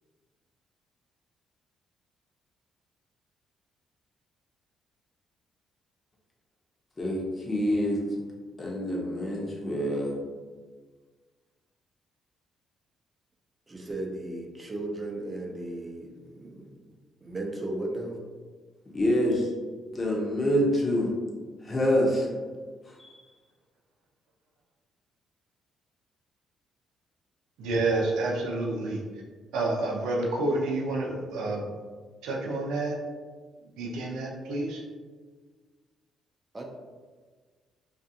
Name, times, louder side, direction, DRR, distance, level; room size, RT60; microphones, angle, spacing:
voice 1, 7.0-8.0 8.6-10.2 18.9-19.5 19.9-21.1 21.6-22.3 23.0-23.1, equal, 30° left, -2 dB, 0.7 m, -26 dB
voice 2, 13.7-16.7 17.2-18.2 36.5-36.6, right 1 dB, 25° right, 0 dB, 0.5 m, -35 dB
voice 3, 27.6-29.0 29.5-31.7 32.2-33.0 33.8-34.8, right 2 dB, 90° right, -1 dB, 0.5 m, -29 dB
2.5 x 2.4 x 2.6 m, 1.5 s
cardioid pair, 85°, 0 cm